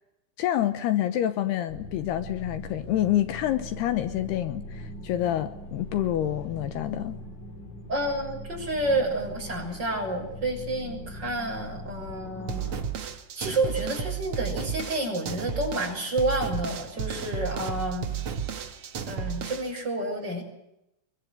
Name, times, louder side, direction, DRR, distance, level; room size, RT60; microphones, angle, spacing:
voice 1, 0.4-7.2, left 12 dB, 75° left, 3.0 m, -27 dB
sound 1, 1.7-12.8, equal, 45° left, 4.2 m, -41 dB
voice 2, 7.9-12.7 13.4-18.1 19.1-20.4, right 1 dB, 25° right, 6.9 m, -29 dB
sound 2, 12.5-19.8, right 7 dB, 50° right, 1.9 m, -33 dB
24.5 x 23.0 x 8.0 m
omnidirectional pair, 4.9 m